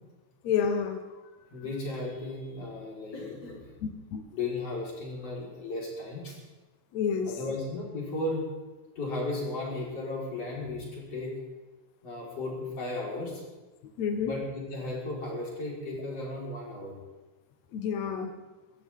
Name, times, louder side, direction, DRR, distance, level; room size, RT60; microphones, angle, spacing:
voice 1, 0.4-1.0 4.1-4.3 6.9-7.3 14.0-14.3 17.7-18.3, left 7 dB, 65° left, 5 dB, 2.0 m, -28 dB
voice 2, 1.5-3.6 4.3-6.4 7.2-8.5 9.0-11.4 12.0-13.4 14.2-17.0, left 2 dB, 40° left, -4 dB, 5.4 m, -35 dB
23.5 x 15.5 x 3.7 m, 1.2 s
omnidirectional pair, 4.2 m